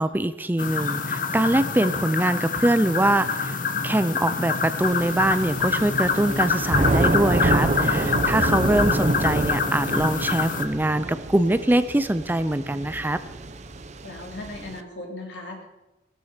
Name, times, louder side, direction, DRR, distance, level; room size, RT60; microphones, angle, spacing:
voice 1, 0.0-13.2, right 1 dB, 10° right, 12 dB, 0.5 m, -23 dB
sound 1, 0.6-10.7, left 5 dB, 50° left, 1.0 m, -26 dB
Thunder / Rain, 4.8-14.8, right 2 dB, 40° right, 0.8 m, -27 dB
voice 2, 14.0-15.6, left 2 dB, 80° left, 0 dB, 3.4 m, -38 dB
16.0 x 12.5 x 4.4 m, 1.0 s
head